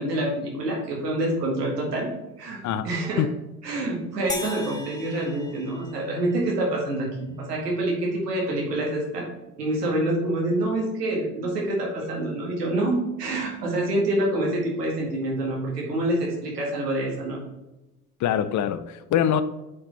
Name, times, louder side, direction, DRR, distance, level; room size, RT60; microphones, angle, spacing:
voice 1, 0.0-2.1 2.4-3.2 3.6-9.3 9.6-17.4, right 1 dB, 85° right, 2.0 m, -26 dB
sound 1, 4.3-6.7, left 3 dB, 10° left, 0.9 m, -37 dB
voice 2, 18.2-19.4, left 9 dB, 40° left, 0.6 m, -23 dB
8.2 x 5.0 x 3.4 m
hypercardioid pair, 60°, 46 cm